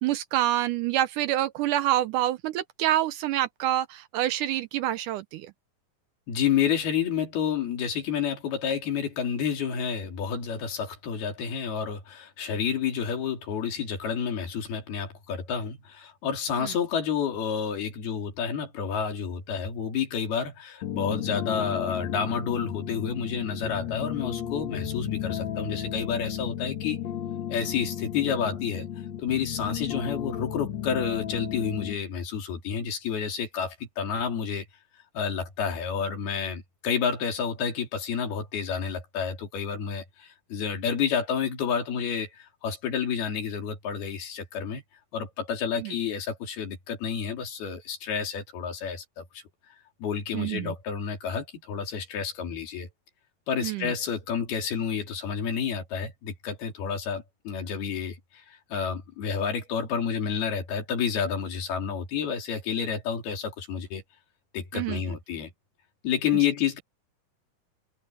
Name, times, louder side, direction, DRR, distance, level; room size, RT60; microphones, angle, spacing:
voice 1, 0.0-5.5 16.6-16.7 45.8-45.9 50.3-50.7 53.6-53.9 64.7-65.2, right 13 dB, 80° right, 1.9 m, -27 dB
voice 2, 6.3-27.0 27.5-28.9 29.2-34.7 35.2-44.8 45.1-49.4 50.0-52.9 53.5-64.0 64.5-65.5 66.0-66.8, left 7 dB, 85° left, 5.3 m, -30 dB
sound 1, 20.8-32.0, left 10 dB, 55° left, 2.3 m, -34 dB
omnidirectional pair, 4.3 m